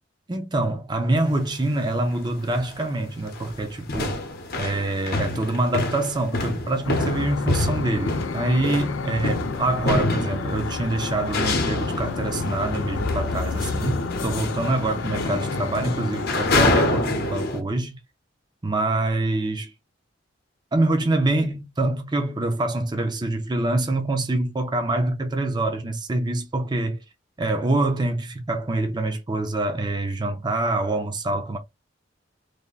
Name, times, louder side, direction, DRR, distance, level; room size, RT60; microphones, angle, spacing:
voice 1, 0.3-4.2 4.6-18.0 18.6-19.7 20.7-27.0 27.4-31.6, right 2 dB, 25° right, 0.6 m, -25 dB
sound 1, 1.2-1.4 2.1-2.2 2.5-2.9 3.2-17.6, left 2 dB, 55° left, 0.8 m, -27 dB
sound 2, 6.8-17.0, left 5 dB, 80° left, 0.4 m, -31 dB
3.3 x 2.1 x 3.8 m
head